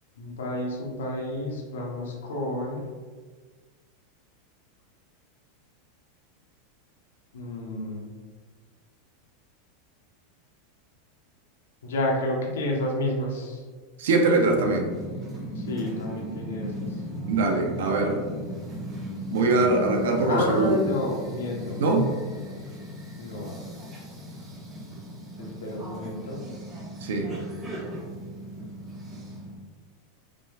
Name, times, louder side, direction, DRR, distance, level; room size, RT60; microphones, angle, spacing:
voice 1, 0.2-2.8 7.3-8.2 11.8-13.6 15.6-16.7 20.2-21.8 23.2-23.5 25.4-26.4, left 1 dB, 90° left, -2 dB, 0.9 m, -30 dB
voice 2, 14.0-14.9 17.3-18.3 19.3-20.8 21.8-22.1 27.0-27.3, right 2 dB, 80° right, 3 dB, 0.6 m, -22 dB
sound 1, 14.8-29.6, equal, 25° right, 1.2 m, -37 dB
5.1 x 3.2 x 2.3 m, 1.5 s
supercardioid pair, 125°, 0 cm